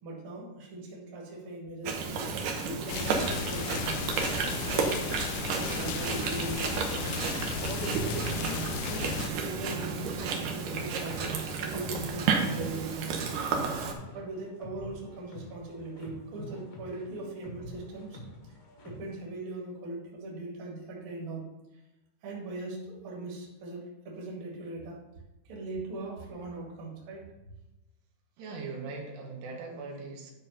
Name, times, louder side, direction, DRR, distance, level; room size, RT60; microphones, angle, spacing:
voice 1, 0.0-4.1 4.6-5.0 5.5-7.2 7.7-9.1 9.4-13.4 14.1-18.2 18.8-21.4 22.2-25.0 25.5-27.2, right 2 dB, 40° right, -3 dB, 2.1 m, -40 dB
Chewing mastication, 1.8-13.9, right 5 dB, 70° right, 2.2 m, -32 dB
sound 1, 2.9-9.3, left 8 dB, 80° left, 2.2 m, -35 dB
sound 2, 7.9-19.2, left 1 dB, 50° left, 2.3 m, -47 dB
voice 2, 28.4-30.3, right 4 dB, 85° right, 0 dB, 3.6 m, -40 dB
9.9 x 4.1 x 5.6 m, 0.99 s
omnidirectional pair, 4.7 m